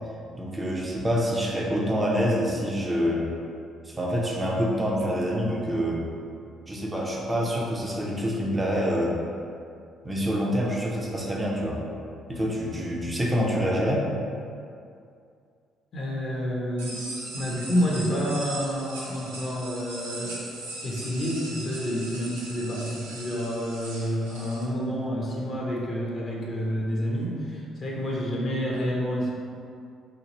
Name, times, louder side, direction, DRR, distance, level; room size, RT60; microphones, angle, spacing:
voice 1, 0.3-3.3 3.8-6.1 6.7-9.2 10.0-11.8 12.3-14.0, equal, 20° right, -2 dB, 0.7 m, -26 dB
voice 2, 15.9-17.0 17.3-20.4 20.8-29.3, equal, 45° left, -3 dB, 0.7 m, -29 dB
sound 1, 16.8-24.6, right 2 dB, 75° right, 0.5 m, -39 dB
3.2 x 2.5 x 3.9 m, 2.4 s
figure-of-eight pair, 45°, 0 cm